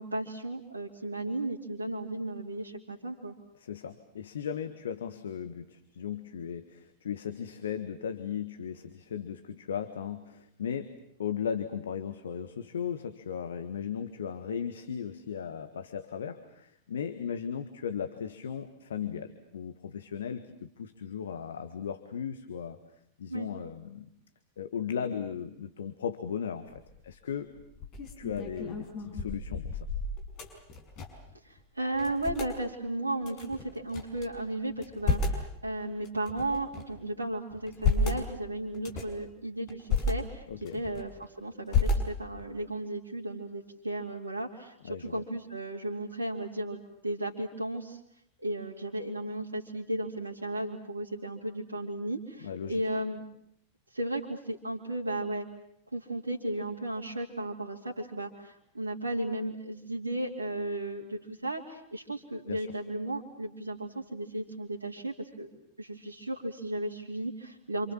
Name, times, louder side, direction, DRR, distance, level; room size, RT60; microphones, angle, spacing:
voice 1, 0.0-3.4 23.3-23.5 31.4-40.4 40.7-48.0 48.4-53.2 53.9-55.5 55.9-65.5 65.8-67.9, right 1 dB, 80° right, -4 dB, 2.8 m, -35 dB
voice 2, 3.6-10.9 11.2-22.8 23.2-24.1 24.6-27.6 28.2-29.9 40.5-40.8 44.8-45.2 52.4-52.8 62.5-62.7, left 8 dB, 65° left, 10 dB, 1.6 m, -36 dB
sound 1, 26.7-27.1 27.6-31.3 31.6-31.7 31.9-32.5 33.2-34.3 34.7-35.5 36.0-37.0 37.5-38.2 38.7-39.2 39.7-40.1 40.6-41.2 41.7-42.4, left 4 dB, 40° left, 6.0 m, -31 dB
28.0 x 27.0 x 7.4 m, 0.72 s
figure-of-eight pair, 90°, 0 cm